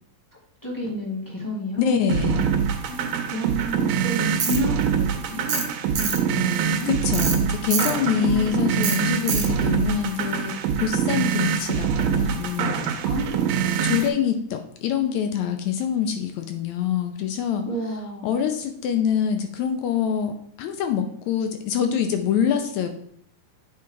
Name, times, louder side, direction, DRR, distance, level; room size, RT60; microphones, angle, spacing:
voice 1, 0.6-2.0 2.8-5.6 6.0-6.9 8.0-8.7 13.0-13.9 17.6-18.3, equal, 10° left, -5 dB, 1.1 m, -31 dB
voice 2, 1.8-2.5 6.9-12.9 13.8-17.7 18.2-22.9, left 8 dB, 80° left, 6 dB, 1.8 m, -25 dB
sound 1, 2.1-14.1, right 7 dB, 85° right, 1.5 m, -24 dB
Tools, 4.4-4.6 5.5-5.7 6.0-6.2 7.1-7.4 7.7-7.9 8.8-9.0 9.3-9.5, right 5 dB, 60° right, 1.4 m, -25 dB
8.4 x 3.7 x 4.6 m, 0.68 s
omnidirectional pair, 3.7 m